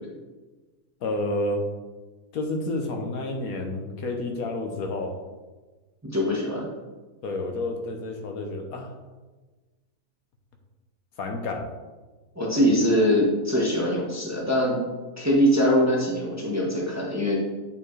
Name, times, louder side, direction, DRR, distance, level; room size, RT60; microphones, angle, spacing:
voice 1, 1.0-1.6 2.3-5.1 7.2-8.9 11.2-11.7, left 2 dB, 70° left, 3 dB, 1.2 m, -30 dB
voice 2, 6.0-6.7 12.3-14.8 15.2-17.4, equal, 10° right, -3 dB, 1.0 m, -22 dB
8.7 x 4.5 x 3.2 m, 1.2 s
omnidirectional pair, 1.6 m